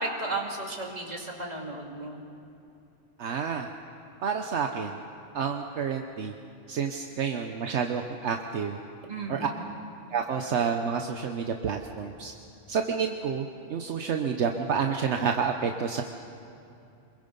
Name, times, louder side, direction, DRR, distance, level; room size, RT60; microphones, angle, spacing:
voice 1, 0.0-2.2 9.1-9.6, right 2 dB, 35° right, -1 dB, 2.6 m, -34 dB
voice 2, 3.2-3.7 4.2-5.0 5.3-6.3 6.7-8.8 9.3-9.5 10.1-12.3 12.7-16.0, right 6 dB, 70° right, 4 dB, 1.1 m, -29 dB
26.0 x 22.0 x 5.3 m, 2.7 s
omnidirectional pair, 1.2 m